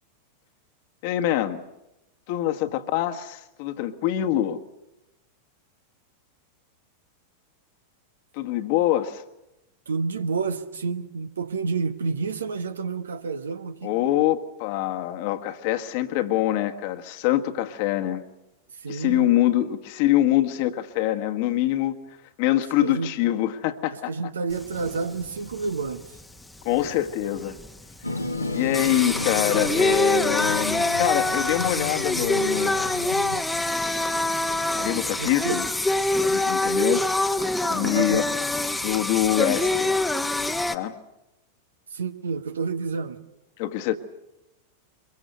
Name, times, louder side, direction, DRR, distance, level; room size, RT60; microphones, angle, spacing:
voice 1, 1.0-1.6 2.3-4.6 8.3-9.2 13.8-18.2 18.9-21.9 22.4-24.1 26.6-27.5 28.5-33.0 34.7-35.7 36.2-37.4 37.7-38.2 38.8-40.0 40.7-40.9 43.6-44.0, left 13 dB, 50° left, 1.6 m, -25 dB
voice 2, 9.9-14.0 18.8-19.3 22.8-23.1 24.1-26.1 35.2-35.6 37.8-38.4 41.9-43.2, right 4 dB, 70° right, 1.3 m, -29 dB
Singing, 24.5-40.8, left 2 dB, 5° left, 1.2 m, -25 dB
sound 1, 28.0-33.4, left 2 dB, 85° left, 1.7 m, -33 dB
24.0 x 23.0 x 8.1 m
figure-of-eight pair, 90°, 0 cm